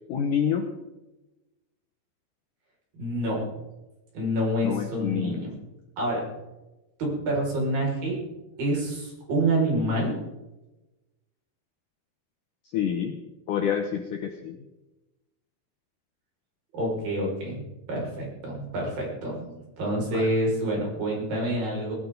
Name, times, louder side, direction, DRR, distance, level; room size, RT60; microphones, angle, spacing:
voice 1, 0.1-0.7 4.6-5.5 12.7-13.2 13.5-14.6 20.1-20.3, left 8 dB, 90° left, 5 dB, 1.8 m, -27 dB
voice 2, 2.9-3.5 4.1-5.5 6.0-6.2 7.0-8.2 8.6-10.1 16.7-17.6 17.9-21.9, right 1 dB, 50° right, -2 dB, 7.4 m, -27 dB
19.5 x 16.5 x 4.0 m, 1.0 s
omnidirectional pair, 5.2 m